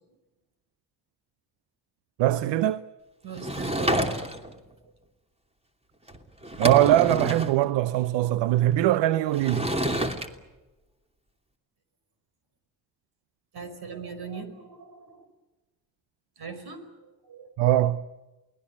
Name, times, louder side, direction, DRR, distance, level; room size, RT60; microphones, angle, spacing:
voice 1, 2.2-2.8 6.6-9.7 17.6-18.1, right 13 dB, 80° right, 0.8 m, -22 dB
voice 2, 3.2-4.2 13.5-15.3 16.4-17.5, right 5 dB, 60° right, 5.3 m, -40 dB
Sliding door / Wood, 3.3-4.6 6.1-6.2 6.4-7.5 9.3-10.3, right 1 dB, 15° right, 3.0 m, -28 dB
28.5 x 20.0 x 8.6 m
supercardioid pair, 60°, 43 cm